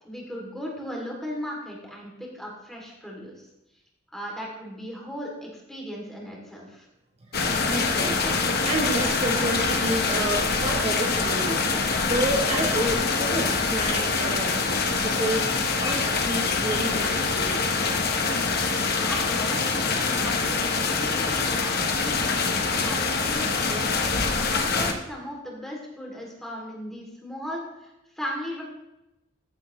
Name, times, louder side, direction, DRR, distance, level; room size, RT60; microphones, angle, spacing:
voice 1, 0.0-3.5 4.1-6.9 19.1-22.1 22.8-23.9 24.4-28.6, equal, ahead, -3 dB, 2.7 m, -37 dB
voice 2, 7.2-14.6 14.9-17.8, right 1 dB, 35° right, 0 dB, 0.9 m, -30 dB
sound 1, 7.3-24.9, left 4 dB, 55° left, 1.0 m, -25 dB
14.5 x 7.8 x 3.1 m, 0.91 s
head